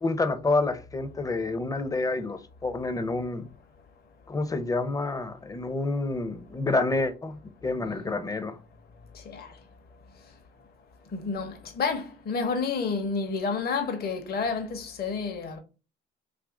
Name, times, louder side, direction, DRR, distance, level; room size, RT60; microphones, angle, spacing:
voice 1, 0.0-3.5 4.3-8.6, left 3 dB, 15° left, 0.5 m, -28 dB
voice 2, 7.8-8.1 9.1-9.5 11.1-15.6, left 4 dB, 50° left, 0.8 m, -30 dB
2.8 x 2.5 x 3.6 m
supercardioid pair, 75°, 20 cm